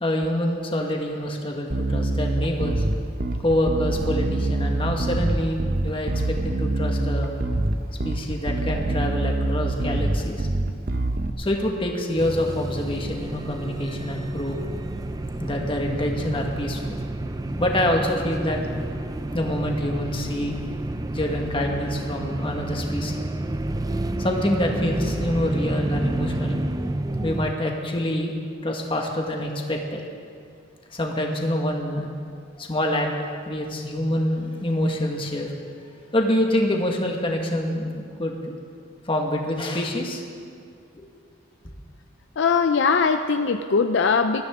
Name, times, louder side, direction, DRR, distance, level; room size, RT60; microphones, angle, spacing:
voice 1, 0.0-2.8 3.4-7.3 8.0-10.5 11.4-14.6 15.4-16.8 17.6-18.6 19.3-20.6 21.1-23.3 24.2-26.6 27.2-28.3 28.6-30.0 30.9-32.1 32.6-33.1 33.5-35.5 36.1-38.5 39.1-40.2 41.0-41.1, left 1 dB, 25° left, 1 dB, 1.6 m, -26 dB
Bass guitar, 1.7-11.3, right 2 dB, 45° right, 0.7 m, -25 dB
sound 1, 12.2-27.5, right 1 dB, 20° right, 0.5 m, -29 dB
voice 2, 42.4-44.4, left 5 dB, 65° left, 8 dB, 0.5 m, -20 dB
21.0 x 13.5 x 3.7 m, 2.3 s
head